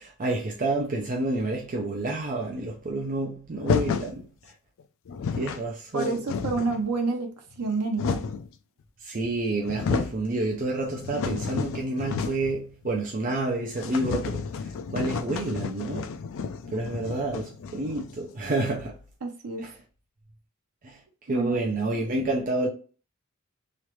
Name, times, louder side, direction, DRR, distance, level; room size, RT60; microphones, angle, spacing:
voice 1, 0.0-4.3 5.3-6.2 9.0-16.1 16.7-18.9 19.6-19.7 20.8-21.0 21.3-22.7, right 2 dB, 40° right, 0.5 m, -29 dB
sound 1, 3.6-4.2 4.8-4.9 5.1-5.6 6.0-6.9 7.5-8.5 9.2-9.3 9.6-10.2 10.6-12.6 12.8-12.9 13.3-13.4 13.7-18.2, left 5 dB, 60° left, 0.3 m, -31 dB
voice 2, 5.9-8.3 19.2-19.7 21.3-21.6, right 3 dB, 85° right, 0.7 m, -29 dB
3.1 x 2.5 x 3.0 m
head